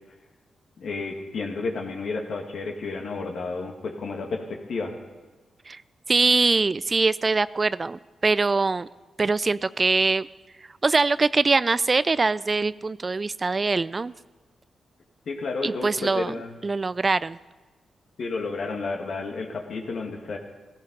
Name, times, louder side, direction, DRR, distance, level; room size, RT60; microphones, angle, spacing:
voice 1, 0.8-4.9 15.3-16.5 18.2-20.4, left 3 dB, 70° left, 2 dB, 2.2 m, -31 dB
voice 2, 6.1-8.9 9.2-10.3 10.8-14.1 15.6-16.4 16.6-17.4, right 3 dB, 40° right, 18 dB, 0.4 m, -23 dB
15.5 x 15.5 x 5.4 m, 1.2 s
supercardioid pair, 45°, 0 cm